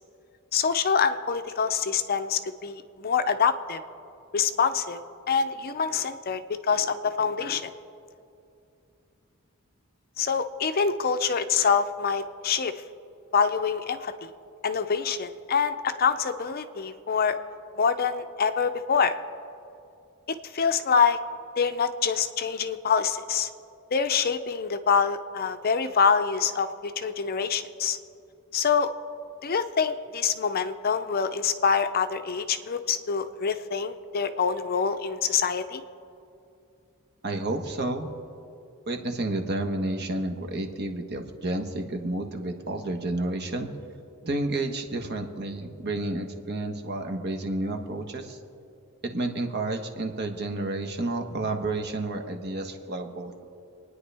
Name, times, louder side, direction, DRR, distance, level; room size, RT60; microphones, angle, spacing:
voice 1, 0.5-3.8 4.3-5.0 5.3-7.7 10.2-12.7 13.3-14.3 14.6-17.4 17.8-19.2 20.3-21.2 21.6-23.5 23.9-28.0 28.5-28.9 29.4-35.8, left 6 dB, 45° left, 10 dB, 0.6 m, -25 dB
voice 2, 37.2-38.1 38.9-43.7 44.2-48.4 49.0-53.5, right 2 dB, 50° right, 3 dB, 1.3 m, -30 dB
27.5 x 9.8 x 3.4 m, 2.6 s
head